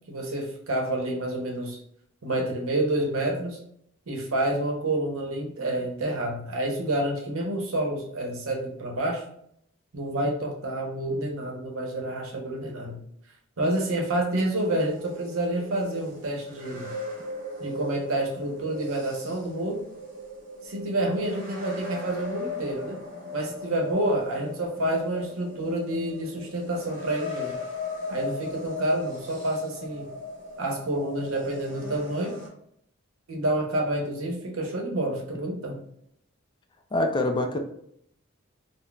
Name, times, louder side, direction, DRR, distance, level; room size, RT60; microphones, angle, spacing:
voice 1, 0.1-1.8 2.2-3.6 4.1-9.2 9.9-13.0 13.6-16.9 17.6-19.8 20.7-23.0 23.3-27.5 28.1-30.1 30.6-32.3 33.3-35.8, right 1 dB, 90° right, 0 dB, 0.8 m, -28 dB
sound 1, 14.5-32.5, left 2 dB, 40° right, 0.9 m, -39 dB
voice 2, 36.9-37.6, left 2 dB, 25° left, 5 dB, 0.3 m, -25 dB
3.8 x 2.0 x 2.3 m, 0.71 s
head